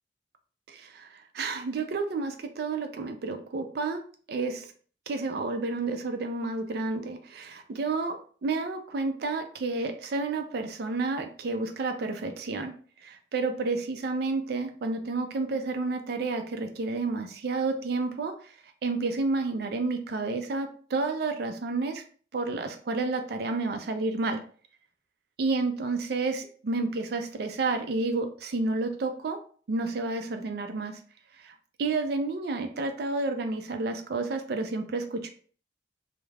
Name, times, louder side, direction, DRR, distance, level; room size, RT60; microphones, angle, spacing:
voice 1, 0.7-4.0 4.3-4.7 5.1-12.8 13.0-18.5 18.8-22.0 22.3-24.4 25.4-29.4 29.7-31.0 31.4-31.5 31.8-35.3, right 3 dB, 60° right, 7 dB, 0.4 m, -30 dB
2.3 x 2.0 x 3.2 m, 0.44 s
head